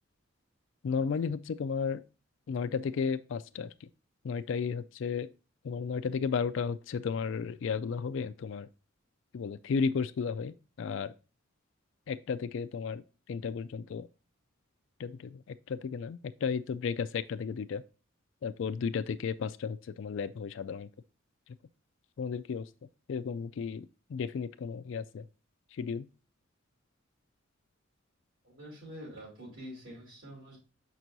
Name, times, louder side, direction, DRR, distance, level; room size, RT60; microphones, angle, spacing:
voice 1, 0.8-2.0 2.5-3.7 4.2-5.3 5.6-8.7 9.3-11.1 12.1-13.0 13.3-14.1 15.0-15.4 15.7-17.8 18.4-20.9 22.2-22.7 23.1-25.2 25.8-26.1, left 6 dB, 65° left, 0.4 m, -33 dB
voice 2, 28.4-30.6, equal, 65° right, 3.9 m, -46 dB
6.8 x 6.0 x 2.6 m
head